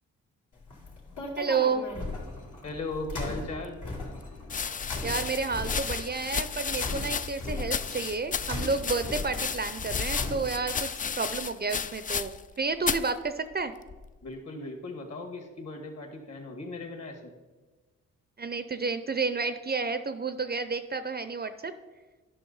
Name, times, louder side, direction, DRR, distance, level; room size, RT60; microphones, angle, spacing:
sound 1, 0.6-10.8, left 2 dB, 70° left, 2.3 m, -38 dB
voice 1, 1.4-1.9 5.0-10.9 11.2-13.7 18.4-21.7, right 4 dB, 30° right, 11 dB, 0.5 m, -30 dB
voice 2, 2.6-3.8 14.2-17.3, left 2 dB, 50° left, 3 dB, 2.0 m, -38 dB
sound 2, 4.4-12.5 12.8-13.1 13.9-14.3, left 6 dB, 25° left, 0.3 m, -33 dB
11.0 x 5.7 x 4.0 m, 1.2 s
cardioid pair, 65°, 32 cm